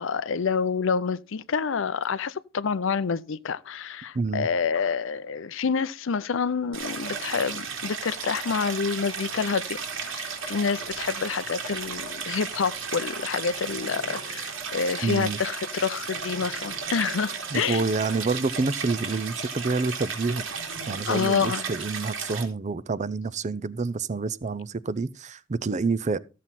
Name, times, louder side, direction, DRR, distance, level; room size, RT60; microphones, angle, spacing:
voice 1, 0.0-9.8 10.1-17.9 21.1-21.7, left 5 dB, 70° left, 0.5 m, -28 dB
voice 2, 4.1-4.5 15.0-15.4 17.5-20.5 20.9-26.2, right 4 dB, 35° right, 0.5 m, -28 dB
Stream, 6.7-22.5, right 5 dB, 90° right, 2.9 m, -34 dB
14.0 x 7.4 x 4.1 m
head